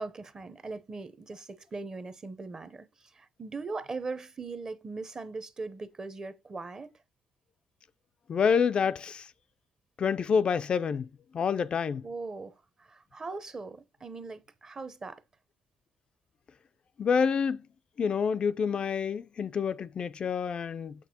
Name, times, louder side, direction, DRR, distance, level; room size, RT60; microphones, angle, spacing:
voice 1, 0.0-6.9 12.0-15.2, right 3 dB, 30° right, 0.7 m, -40 dB
voice 2, 8.3-9.3 10.0-11.1 11.3-12.1 17.0-17.6 18.0-20.9, left 6 dB, 45° left, 0.3 m, -27 dB
6.6 x 6.0 x 2.8 m
cardioid pair, 80°, 2 cm